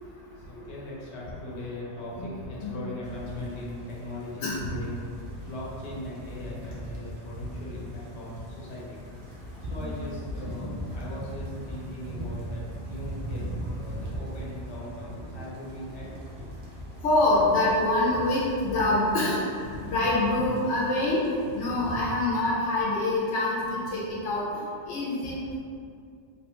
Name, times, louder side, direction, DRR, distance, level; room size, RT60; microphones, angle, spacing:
voice 1, 0.0-9.0 9.7-13.4 13.7-16.1, left 1 dB, 70° left, -6 dB, 1.0 m, -39 dB
sound 1, 3.0-22.4, equal, 75° right, 0.9 m, -40 dB
voice 2, 17.0-19.4 19.8-25.6, left 2 dB, 90° left, -5 dB, 0.9 m, -25 dB
3.0 x 2.1 x 2.9 m, 2.3 s
omnidirectional pair, 1.2 m